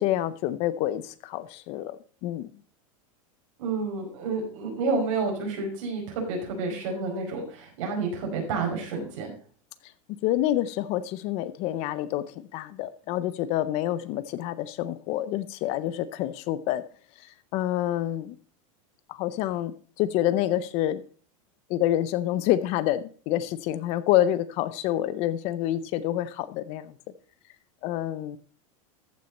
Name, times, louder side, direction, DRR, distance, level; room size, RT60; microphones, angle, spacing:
voice 1, 0.0-2.5 10.2-16.8 17.2-18.4 19.1-21.0 21.7-26.9 27.8-28.4, left 13 dB, 35° left, 16 dB, 0.5 m, -27 dB
voice 2, 3.6-9.3, right 4 dB, 60° right, 1 dB, 4.9 m, -30 dB
14.0 x 6.2 x 4.1 m, 0.42 s
supercardioid pair, 165°, 18 cm